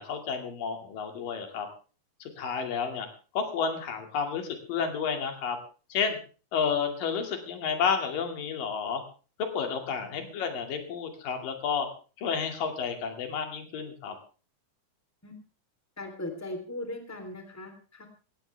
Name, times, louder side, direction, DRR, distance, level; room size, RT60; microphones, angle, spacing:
voice 1, 0.0-1.7 2.4-3.1 3.3-5.6 5.9-6.2 6.5-9.0 9.5-11.9 12.2-14.1, left 6 dB, 85° left, 5 dB, 4.1 m, -31 dB
voice 2, 16.0-18.1, left 1 dB, 5° left, 5 dB, 3.0 m, -39 dB
17.5 x 17.5 x 3.4 m, 0.36 s
omnidirectional pair, 3.8 m